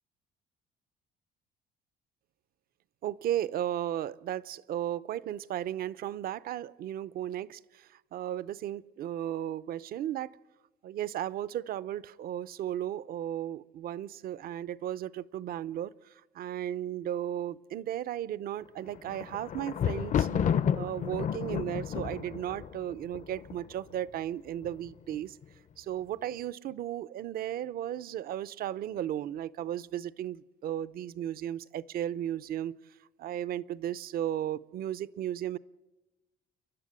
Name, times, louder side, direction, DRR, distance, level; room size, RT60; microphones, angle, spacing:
voice 1, 3.0-10.4 10.8-20.3 20.7-25.4 25.8-32.8 33.2-35.6, right 11 dB, 60° right, 0.7 m, -35 dB
Thunder, 18.8-23.9 24.6-25.1 25.4-25.5, left 8 dB, 50° left, 0.8 m, -31 dB
29.5 x 11.5 x 10.0 m
cardioid pair, 110°, 17 cm